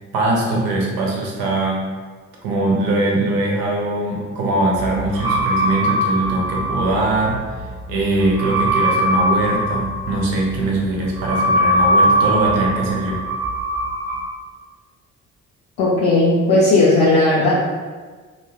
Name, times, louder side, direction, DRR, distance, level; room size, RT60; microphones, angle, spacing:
voice 1, 0.1-1.9 2.4-7.6 7.9-13.2, right 2 dB, 70° right, -2 dB, 0.7 m, -21 dB
sound 1, 4.8-14.2, right 1 dB, 10° right, 0.6 m, -21 dB
voice 2, 15.8-17.5, left 2 dB, 70° left, -7 dB, 0.6 m, -15 dB
2.2 x 2.1 x 3.1 m, 1.5 s
hypercardioid pair, 40°, 38 cm